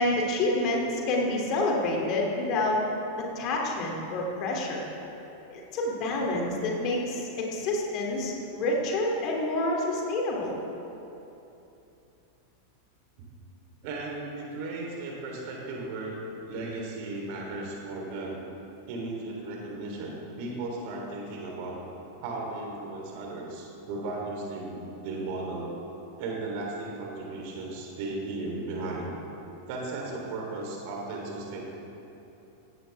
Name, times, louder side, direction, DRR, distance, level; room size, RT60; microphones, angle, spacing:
voice 1, 0.0-2.8 3.2-4.9 5.5-10.5, left 2 dB, 40° left, -1 dB, 3.0 m, -28 dB
voice 2, 13.8-16.2 16.5-18.4 18.9-21.8 22.2-25.7 26.2-29.1 29.7-31.6, right 2 dB, 45° right, -1 dB, 3.6 m, -35 dB
17.0 x 16.0 x 3.6 m, 2.9 s
figure-of-eight pair, 90°, 0 cm